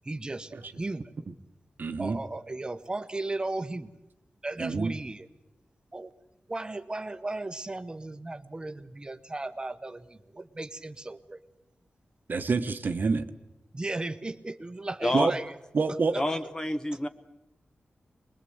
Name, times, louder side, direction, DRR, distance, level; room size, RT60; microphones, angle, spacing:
voice 1, 0.0-1.1 2.0-3.9 4.4-5.3 5.9-6.1 6.5-11.4 13.7-15.5 16.1-16.2, right 2 dB, 20° right, 11 dB, 1.1 m, -36 dB
voice 2, 1.8-2.2 4.6-4.9 12.3-13.3 15.1-15.4 15.7-16.2, right 4 dB, 50° right, 9 dB, 1.2 m, -27 dB
voice 3, 16.1-17.1, left 1 dB, 15° left, 9 dB, 1.0 m, -28 dB
24.0 x 21.0 x 8.0 m, 0.96 s
wide cardioid pair, 145°, 4 cm